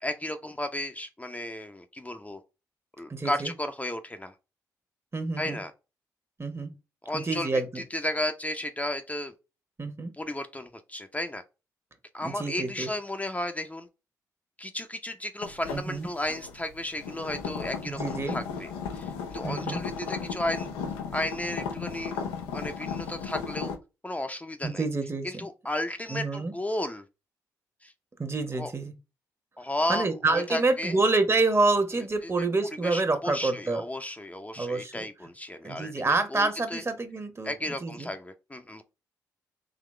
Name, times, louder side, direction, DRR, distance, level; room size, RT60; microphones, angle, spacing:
voice 1, 0.0-2.4 3.0-4.3 5.4-5.7 7.0-7.5 7.8-9.3 10.2-11.4 12.1-13.9 14.6-20.7 21.1-22.1 22.5-23.7 24.0-24.8 25.2-27.0 27.8-27.9 28.6-28.7 29.6-30.9 32.8-35.9 36.3-36.8 37.4-38.8, left 1 dB, 15° left, 0.6 m, -33 dB
voice 2, 3.1-3.5 5.1-5.6 6.4-6.7 7.1-7.8 9.8-10.1 12.2-12.9 15.7-16.1 17.8-18.4 19.4-19.8 24.6-25.4 26.1-26.5 28.2-28.9 29.9-33.8 34.6-35.1 35.6-38.1, right 3 dB, 30° right, 1.1 m, -27 dB
sound 1, 15.4-23.8, left 6 dB, 85° left, 0.5 m, -35 dB
3.9 x 2.9 x 3.2 m
hypercardioid pair, 40°, 9 cm